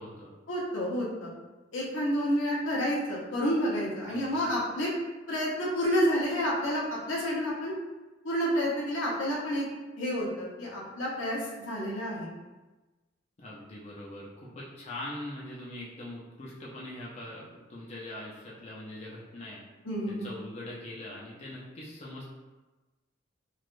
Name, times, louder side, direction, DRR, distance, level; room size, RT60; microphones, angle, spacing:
voice 1, 0.5-1.3 1.7-4.9 5.3-7.7 8.2-9.6 10.0-11.4 11.7-12.3 19.8-20.3, equal, 80° left, -5 dB, 0.8 m, -29 dB
voice 2, 4.1-4.5 13.4-19.6 20.1-22.2, left 1 dB, 35° left, -6 dB, 0.5 m, -42 dB
3.3 x 2.3 x 2.5 m, 1.2 s
head